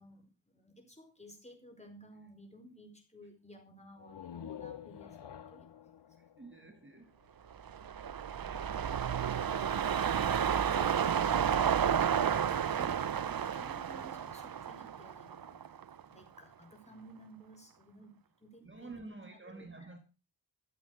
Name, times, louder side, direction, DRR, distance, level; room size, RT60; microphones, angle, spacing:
voice 1, 0.0-5.9 10.3-11.1 11.8-20.0, equal, 15° left, 4.6 m, -55 dB
sound 1, 3.9-7.6, left 9 dB, 70° left, 0.9 m, -49 dB
voice 2, 6.2-7.2 18.6-20.0, right 3 dB, 25° right, 2.0 m, -49 dB
sound 2, 7.6-16.0 16.4-16.5, right 8 dB, 55° right, 0.7 m, -31 dB
14.5 x 7.5 x 6.5 m
wide cardioid pair, 80°, 42 cm